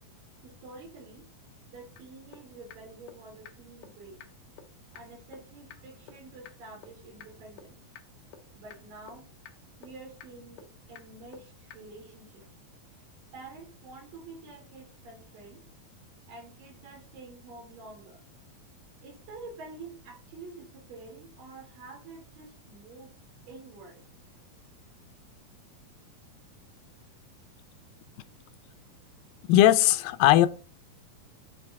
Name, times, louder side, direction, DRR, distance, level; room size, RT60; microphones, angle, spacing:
voice 1, 0.4-1.2 1.7-4.2 4.9-7.8 8.6-9.2 9.8-12.5 13.3-15.7 16.3-18.2 19.0-23.2 23.5-24.0, right 3 dB, 75° right, 3.8 m, -48 dB
sound 1, 2.0-2.1 2.3-2.4 2.7-2.8 3.1-3.2 3.5-3.6 3.8-3.9 4.2-4.3 4.6-4.7 5.0-5.1 5.3-5.4 5.7-5.8 6.1-6.2 6.5-6.6 6.8-6.9 7.2-7.3 7.6-7.7 8.0-8.1 8.3-8.4 8.7-8.8 9.1-9.2 9.5-9.6 9.8-9.9 10.2-10.3 10.6-10.7 11.0-11.1 11.3-11.4 11.7-11.8, left 9 dB, 70° left, 2.2 m, -47 dB
voice 2, 29.5-30.5, left 13 dB, 90° left, 2.4 m, -19 dB
8.8 x 3.1 x 4.6 m
omnidirectional pair, 4.0 m